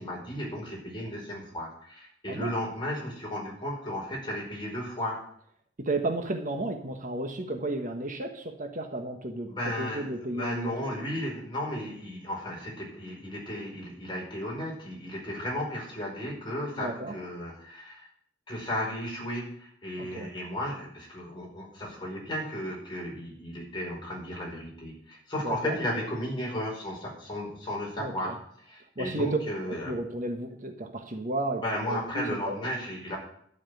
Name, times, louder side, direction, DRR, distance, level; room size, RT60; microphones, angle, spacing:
voice 1, 0.0-5.2 9.5-18.1 18.5-28.4 28.7-30.0 31.6-33.2, equal, 25° left, -2 dB, 5.0 m, -34 dB
voice 2, 5.8-9.5 9.8-11.0 16.8-17.2 20.0-20.3 25.4-25.8 28.0-28.4 29.0-29.4 29.7-32.6, right 2 dB, 45° right, 5 dB, 1.2 m, -33 dB
12.0 x 6.0 x 9.3 m, 0.67 s
head